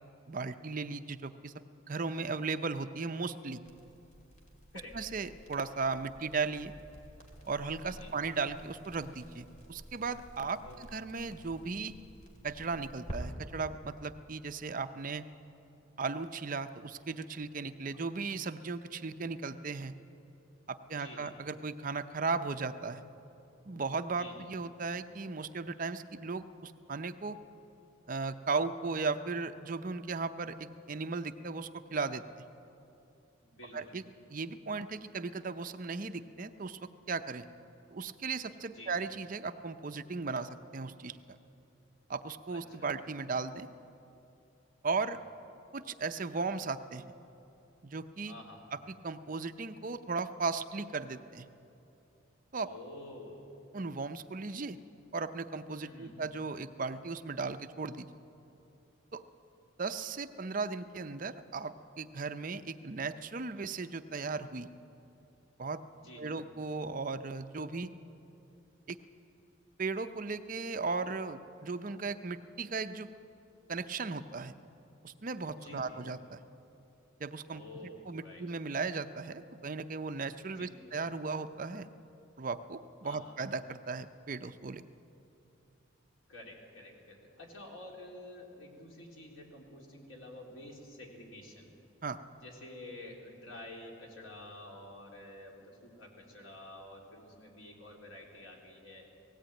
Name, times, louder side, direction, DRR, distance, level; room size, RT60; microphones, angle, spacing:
voice 1, 0.3-1.5 1.9-3.6 4.9-6.7 7.4-10.6 10.9-11.9 12.4-15.2 16.0-19.9 20.7-23.0 23.7-27.4 28.1-32.2 33.7-34.0 34.3-37.5 37.9-41.2 42.1-43.7 44.8-45.2 45.7-47.0 47.8-48.3 48.7-48.8 49.0-51.5 52.5-52.7 53.7-54.8 55.1-58.1 59.1-59.2 59.8-64.7 65.6-65.8 66.2-67.9 68.9-69.0 69.8-73.1 73.7-74.5 75.0-76.4 77.2-77.6 78.1-81.9 82.4-84.8 92.0-92.2, right 4 dB, 40° right, 10 dB, 0.6 m, -36 dB
Crackle, 3.6-13.2, right 1 dB, 35° left, 2.6 m, -51 dB
voice 2, 7.8-8.1 10.6-10.8 17.8-18.0 21.0-21.4 24.2-24.5 33.4-33.9 38.7-38.9 42.5-42.9 44.8-45.1 48.3-48.7 52.6-53.5 55.8-56.1 65.9-66.4 75.5-76.0 77.5-78.4 80.6-80.8 83.0-83.4 86.3-91.8 92.4-99.1, left 1 dB, 80° left, -1 dB, 3.7 m, -50 dB
18.0 x 17.0 x 9.0 m, 2.8 s
head